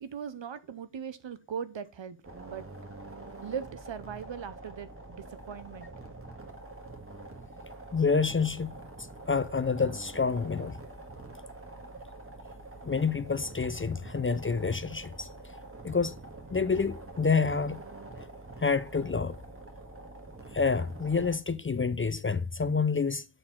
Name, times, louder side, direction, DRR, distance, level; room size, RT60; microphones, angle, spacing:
voice 1, 0.0-2.2 2.4-2.7 3.4-5.9, right 7 dB, 70° right, 0.8 m, -39 dB
sound 1, 2.2-21.4, right 2 dB, 25° right, 1.7 m, -46 dB
voice 2, 7.9-8.8 9.3-10.8 12.8-15.3 15.8-16.2 16.5-17.8 18.6-19.4 20.5-23.2, left 5 dB, 25° left, 0.4 m, -28 dB
7.6 x 4.3 x 4.4 m
wide cardioid pair, 60°, 47 cm